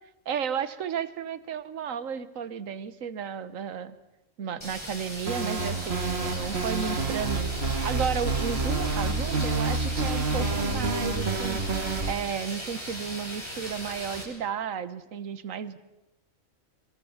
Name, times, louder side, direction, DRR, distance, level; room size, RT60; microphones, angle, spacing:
voice 1, 0.2-4.0 4.4-7.5 7.8-11.6 12.0-15.8, right 7 dB, 75° right, 14 dB, 1.5 m, -33 dB
sound 1, 4.6-14.2, equal, 20° left, 5.7 m, -38 dB
sound 2, 5.3-12.1, right 3 dB, 50° right, 2.0 m, -28 dB
23.5 x 22.5 x 7.2 m, 0.97 s
omnidirectional pair, 1.4 m